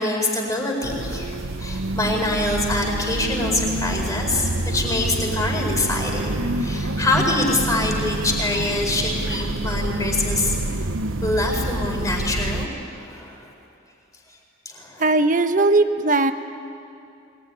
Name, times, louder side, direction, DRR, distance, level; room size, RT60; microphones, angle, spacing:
voice 1, 0.0-10.6 11.2-13.5 14.6-15.0, left 2 dB, 15° left, 0 dB, 4.6 m, -25 dB
sound 1, 0.8-12.7, right 1 dB, 70° right, 1.1 m, -27 dB
voice 2, 15.0-16.3, right 2 dB, 40° right, 8 dB, 1.2 m, -18 dB
23.0 x 20.0 x 10.0 m, 2.6 s
head